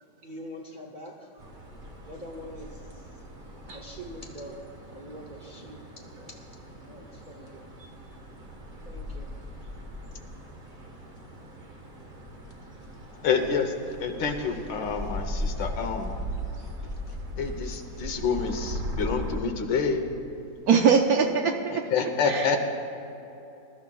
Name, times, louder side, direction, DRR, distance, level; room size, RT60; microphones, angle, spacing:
voice 1, 0.2-1.3 2.1-6.3 6.8-7.7 8.8-9.3, equal, 45° right, -1 dB, 0.6 m, -44 dB
sound 1, 1.4-19.4, equal, 30° right, 1.3 m, -38 dB
voice 2, 13.2-13.7 14.0-16.1 17.4-20.0 21.7-22.7, left 5 dB, 75° left, 6 dB, 1.6 m, -28 dB
voice 3, 20.7-21.8 22.2-22.7, right 6 dB, 65° right, 3 dB, 1.0 m, -22 dB
21.0 x 12.5 x 2.3 m, 2.9 s
omnidirectional pair, 2.1 m